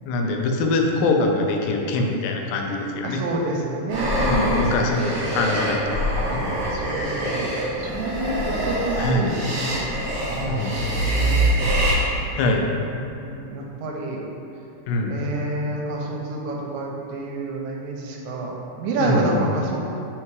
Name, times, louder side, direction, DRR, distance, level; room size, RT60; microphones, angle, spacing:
voice 1, 0.1-3.2 4.2-6.6 9.0-9.3 10.5-10.8 12.3-12.8 14.9-15.2 19.0-19.5, left 2 dB, 85° left, 2 dB, 2.3 m, -23 dB
voice 2, 3.0-5.4 6.7-9.9 10.3-11.9 13.1-14.2 15.1-19.8, right 2 dB, 90° right, -2 dB, 2.4 m, -29 dB
sound 1, 3.9-11.9, right 1 dB, 50° right, 1.4 m, -24 dB
5.6 x 3.6 x 4.6 m, 2.7 s
omnidirectional pair, 3.8 m